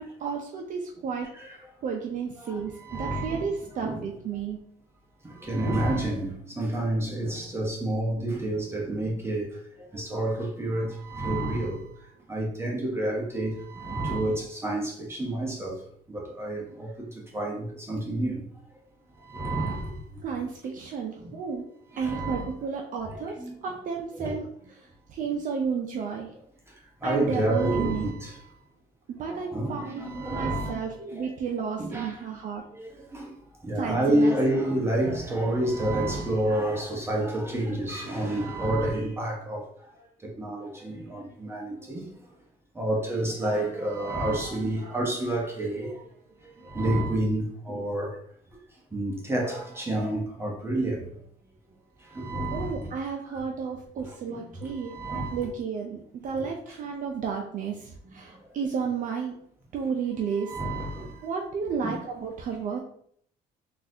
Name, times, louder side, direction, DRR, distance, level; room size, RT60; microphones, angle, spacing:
voice 1, 0.0-1.3 1.5-4.6 20.2-21.7 22.0-23.4 23.6-24.5 24.8-26.3 27.0-28.1 29.2-32.6 33.8-34.4 52.5-54.9 55.3-59.4 59.7-60.6 61.2-62.8, right 6 dB, 50° right, 0.5 m, -32 dB
voice 2, 2.4-4.0 5.4-9.5 9.9-11.8 12.3-15.8 16.1-16.9 17.3-18.4 19.3-20.0 21.2-21.3 21.9-22.5 23.1-23.5 24.1-24.3 26.0-26.1 27.0-28.4 29.2-31.2 31.8-32.2 32.8-33.3 33.6-39.6 40.2-42.0 42.8-46.0 46.6-48.1 48.9-51.0 52.1-52.9 54.3-54.4 54.8-55.4 56.4-56.5 58.1-58.2 60.3-61.2 61.8-61.9, right 1 dB, 15° right, 0.7 m, -29 dB
3.9 x 2.5 x 2.7 m
cardioid pair, 110°, 17 cm